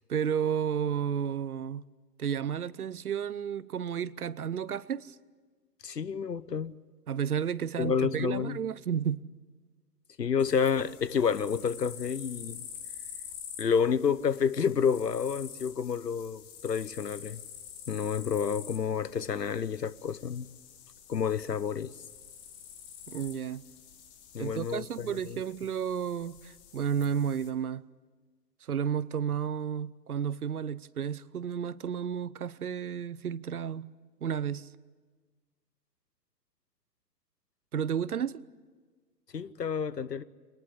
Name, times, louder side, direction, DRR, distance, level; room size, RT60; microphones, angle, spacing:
voice 1, 0.1-1.8 2.2-5.1 7.1-9.2 23.1-23.6 24.4-27.8 28.7-33.9 34.2-34.7 37.7-38.4, right 8 dB, 60° right, 0.8 m, -32 dB
voice 2, 5.8-6.7 7.8-8.6 10.2-12.6 13.6-17.4 17.9-20.5 21.1-21.9 24.3-25.4 39.3-40.2, left 6 dB, 75° left, 1.0 m, -29 dB
sound 1, 10.4-27.5, left 8 dB, 10° left, 0.7 m, -48 dB
25.5 x 19.5 x 10.0 m
figure-of-eight pair, 125°, 49 cm